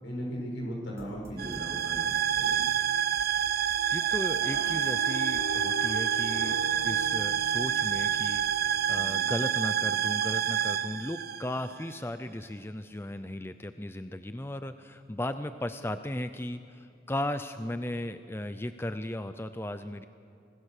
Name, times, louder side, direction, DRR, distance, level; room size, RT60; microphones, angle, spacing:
voice 1, 0.0-2.6, equal, 80° left, -2 dB, 6.8 m, -37 dB
sound 1, 0.8-8.8, equal, 15° right, 3.3 m, -51 dB
sound 2, 1.4-11.9, right 9 dB, 50° right, 0.5 m, -28 dB
voice 2, 3.9-20.1, left 1 dB, 10° left, 10 dB, 0.5 m, -36 dB
sound 3, 4.4-11.3, left 4 dB, 60° left, 4.7 m, -43 dB
24.5 x 21.0 x 6.7 m, 2.5 s
head